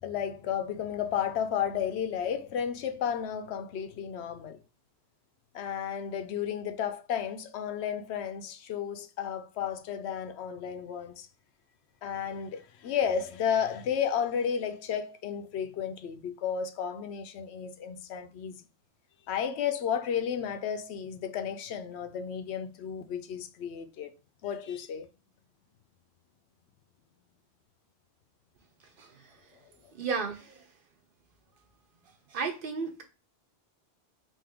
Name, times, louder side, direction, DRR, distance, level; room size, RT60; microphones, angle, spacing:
voice 1, 0.0-4.6 5.5-11.3 12.0-18.5 19.3-24.1 24.4-25.1, left 8 dB, 85° left, 0.9 m, -33 dB
voice 2, 29.9-30.6 32.3-33.0, right 5 dB, 55° right, 0.9 m, -33 dB
3.5 x 2.7 x 3.4 m
omnidirectional pair, 1.1 m